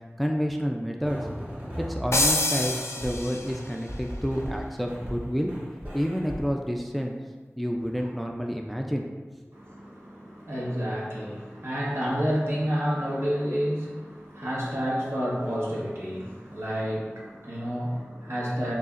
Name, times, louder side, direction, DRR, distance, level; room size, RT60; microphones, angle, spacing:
voice 1, 0.2-1.2 1.8-5.5 5.9-7.2 7.6-9.1, equal, ahead, 1 dB, 0.4 m, -29 dB
sound 1, 1.0-2.3 2.6-3.2 3.5-4.6 4.9-5.2 5.5-6.4, equal, 40° right, 1.3 m, -37 dB
sound 2, 2.1-3.7, left 1 dB, 75° left, 0.5 m, -26 dB
voice 2, 9.5-18.7, equal, 70° right, -6 dB, 1.3 m, -30 dB
6.5 x 2.8 x 2.5 m, 1.4 s
wide cardioid pair, 40°, 5 cm